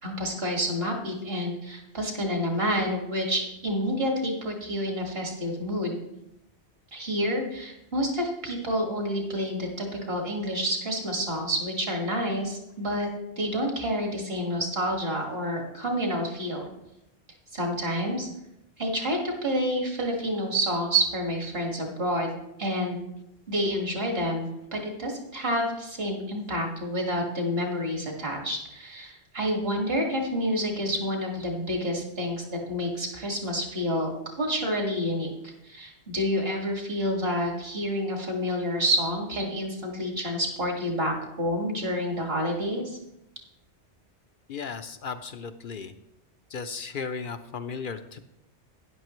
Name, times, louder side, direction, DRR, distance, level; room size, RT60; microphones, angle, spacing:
voice 1, 0.0-6.0 6.9-13.1 13.4-16.7 17.5-18.3 18.8-22.3 22.6-23.0 23.5-34.1 34.4-35.3 35.6-43.0, equal, 60° right, 1 dB, 2.1 m, -28 dB
voice 2, 44.5-45.9 46.5-48.2, left 5 dB, 60° left, 9 dB, 0.7 m, -35 dB
12.5 x 9.9 x 3.1 m, 0.86 s
omnidirectional pair, 1.1 m